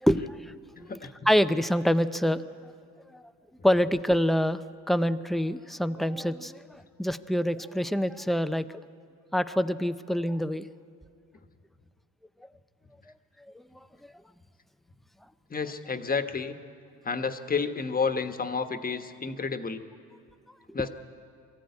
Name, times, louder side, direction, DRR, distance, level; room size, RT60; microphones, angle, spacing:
voice 1, 0.0-0.5 1.3-2.7 3.1-3.2 3.6-4.6 4.9-8.8 9.3-10.7 13.5-13.6, equal, ahead, 12 dB, 0.6 m, -26 dB
voice 2, 0.8-1.1 15.5-16.6 17.0-19.8 20.7-20.9, left 5 dB, 30° left, 8 dB, 1.3 m, -30 dB
22.5 x 14.5 x 9.7 m, 2.3 s
cardioid pair, 90°, 30 cm